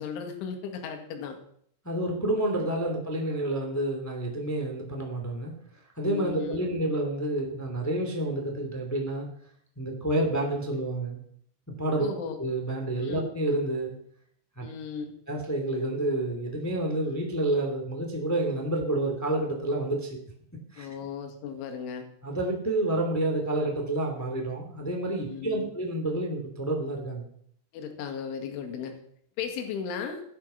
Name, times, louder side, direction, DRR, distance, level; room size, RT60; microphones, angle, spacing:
voice 1, 0.0-1.4 6.0-6.7 12.0-12.4 13.0-13.3 14.6-15.1 20.8-22.1 25.2-25.7 27.7-28.9 29.4-30.2, left 6 dB, 70° left, 5 dB, 4.3 m, -36 dB
voice 2, 1.8-5.5 5.9-9.3 9.7-11.2 11.8-12.1 12.4-13.9 14.5-14.7 15.3-20.2 20.7-20.9 22.2-27.3, right 1 dB, 10° left, 1 dB, 1.0 m, -29 dB
16.0 x 11.5 x 5.8 m, 0.66 s
omnidirectional pair, 5.9 m